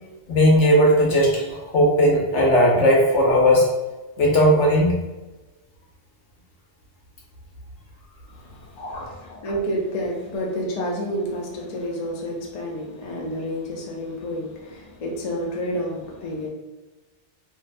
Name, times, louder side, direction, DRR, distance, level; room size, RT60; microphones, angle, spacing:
voice 1, 0.3-3.7 4.2-5.0 8.8-9.1, equal, 85° left, -2 dB, 1.0 m, -17 dB
voice 2, 8.3-16.5, equal, 50° left, -2 dB, 0.5 m, -30 dB
2.5 x 2.1 x 2.5 m, 1.1 s
omnidirectional pair, 1.2 m